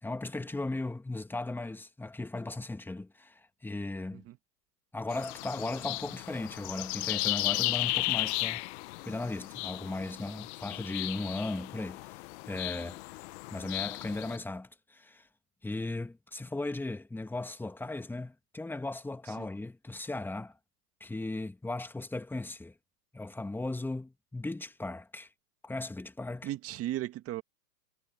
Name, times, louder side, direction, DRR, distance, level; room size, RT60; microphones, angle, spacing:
voice 1, 0.0-4.2 4.9-8.6 9.1-12.2 12.5-15.2 15.6-20.5 21.0-22.7 23.1-25.3 25.6-26.5, left 2 dB, 5° left, 2.1 m, -37 dB
sound 1, 5.1-14.4, left 24 dB, 40° left, 1.2 m, -35 dB
voice 2, 26.4-27.4, right 14 dB, 30° right, 2.2 m, -36 dB
hypercardioid pair, 120°, 49 cm